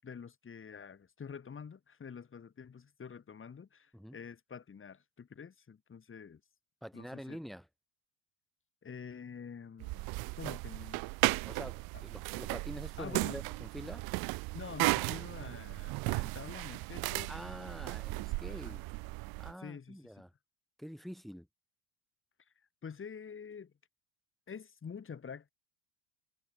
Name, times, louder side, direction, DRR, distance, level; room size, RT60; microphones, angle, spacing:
voice 1, 0.0-6.4 6.9-7.4 8.8-10.1 10.4-11.1 11.9-12.0 13.0-13.4 14.5-17.3 18.1-18.8 19.6-20.2 22.8-23.7 24.5-25.5, left 6 dB, 25° left, 7.4 m, -47 dB
voice 2, 6.8-7.7 11.4-14.0 17.3-18.8 19.4-20.3 20.8-21.5, equal, ahead, 1.3 m, -46 dB
sound 1, 9.8-19.5, right 26 dB, 50° right, 0.5 m, -35 dB
supercardioid pair, 125°, 50 cm